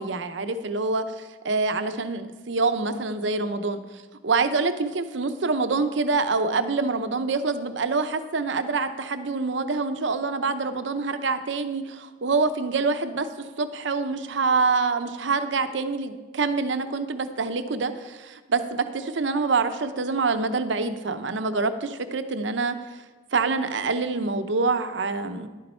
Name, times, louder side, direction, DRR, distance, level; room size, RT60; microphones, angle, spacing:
voice 1, 0.0-3.8 4.2-22.8 23.3-25.5, right 4 dB, 75° right, 10 dB, 0.7 m, -26 dB
11.5 x 8.4 x 4.4 m, 1.3 s
head